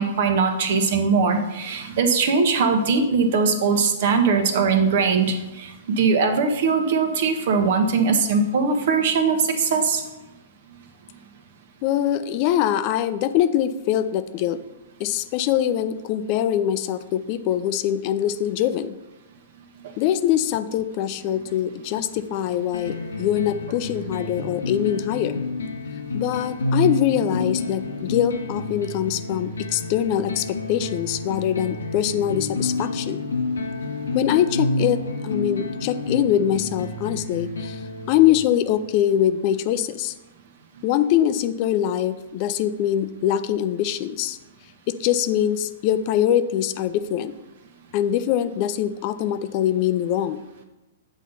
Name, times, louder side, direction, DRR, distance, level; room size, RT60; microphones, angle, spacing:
voice 1, 0.0-10.0, right 5 dB, 60° right, 6 dB, 1.0 m, -21 dB
voice 2, 11.8-14.6 15.0-19.0 20.0-25.4 26.1-33.2 34.1-37.8 38.1-40.1 40.8-44.4 44.9-47.3 47.9-50.4, left 11 dB, 45° left, 12 dB, 0.4 m, -23 dB
sound 1, 22.7-38.7, left 2 dB, 85° left, 0.9 m, -29 dB
7.5 x 4.0 x 5.4 m, 1.0 s
hypercardioid pair, 115°, 0 cm